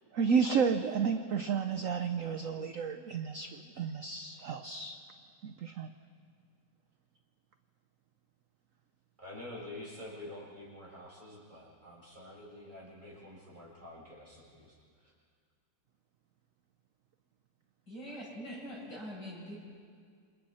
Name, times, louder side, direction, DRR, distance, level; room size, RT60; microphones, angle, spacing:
voice 1, 0.1-5.0 5.4-5.9, right 6 dB, 60° right, 8 dB, 0.9 m, -31 dB
voice 2, 9.2-15.1, left 1 dB, 25° right, -5 dB, 6.6 m, -48 dB
voice 3, 17.9-19.6, equal, 60° left, -6 dB, 8.7 m, -43 dB
28.0 x 27.5 x 4.3 m, 2.1 s
omnidirectional pair, 2.1 m